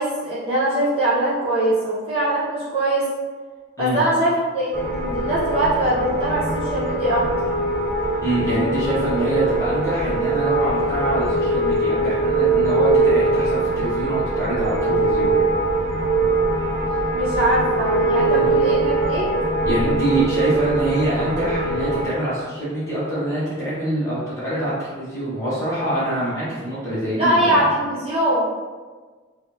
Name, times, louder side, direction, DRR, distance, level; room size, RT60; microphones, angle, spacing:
voice 1, 0.0-3.1 3.8-7.3 17.1-19.3 27.2-28.5, right 1 dB, 30° right, -10 dB, 1.4 m, -22 dB
sound 1, 4.7-22.1, right 2 dB, 50° right, 0.5 m, -22 dB
voice 2, 8.2-15.3 18.3-18.5 19.6-27.6, right 1 dB, 15° left, -11 dB, 1.0 m, -25 dB
3.5 x 2.3 x 2.9 m, 1.4 s
head